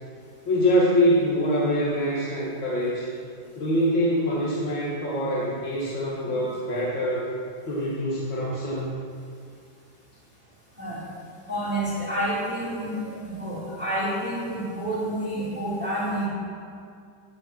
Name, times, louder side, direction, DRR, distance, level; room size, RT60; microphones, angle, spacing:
voice 1, 0.5-3.1 3.6-7.3 7.7-9.0, equal, 75° left, -6 dB, 2.4 m, -24 dB
voice 2, 11.5-16.3, right 1 dB, 5° right, -10 dB, 3.4 m, -29 dB
15.0 x 6.3 x 6.1 m, 2.3 s
omnidirectional pair, 2.2 m